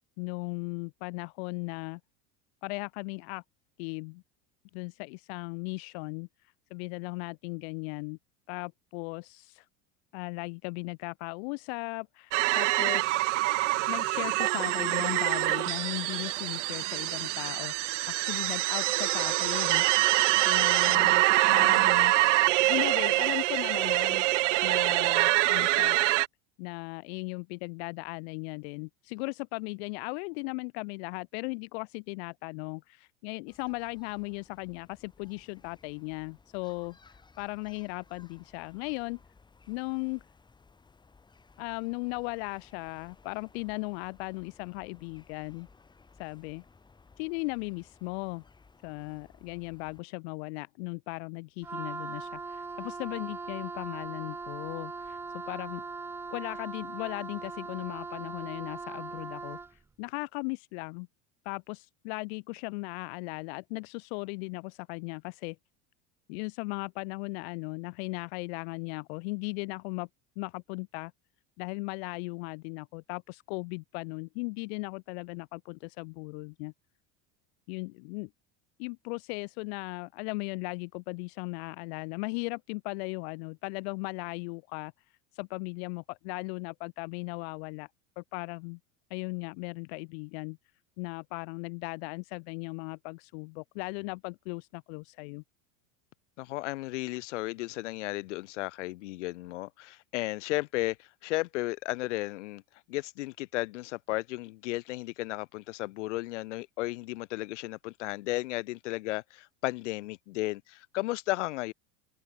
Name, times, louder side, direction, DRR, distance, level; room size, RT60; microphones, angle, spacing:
voice 1, 0.2-2.0 2.6-3.4 3.8-4.2 4.7-6.3 6.7-8.2 8.5-9.7 10.1-13.3 13.9-17.7 18.1-19.9 20.5-21.2 21.5-22.1 22.7-24.3 24.6-26.0 26.6-39.2 39.7-40.2 41.6-45.7 46.2-46.6 47.2-48.4 48.8-55.8 56.3-61.1 61.4-65.6 66.3-70.1 70.4-71.1 71.6-76.7 77.7-78.3 78.8-84.9 85.3-87.9 88.2-88.8 89.1-90.6 91.0-95.4, left 30 dB, 65° left, 1.0 m, -37 dB
sound 1, 12.3-26.3, right 20 dB, 90° right, 0.8 m, -25 dB
sound 2, 33.5-50.0, left 4 dB, 10° left, 3.2 m, -60 dB
Wind instrument woodwind instrument, 51.6-59.8, right 4 dB, 5° right, 0.4 m, -40 dB
voice 2, 96.4-101.0 101.2-102.6 102.9-111.7, left 19 dB, 80° left, 2.0 m, -34 dB
supercardioid pair, 145°, 35 cm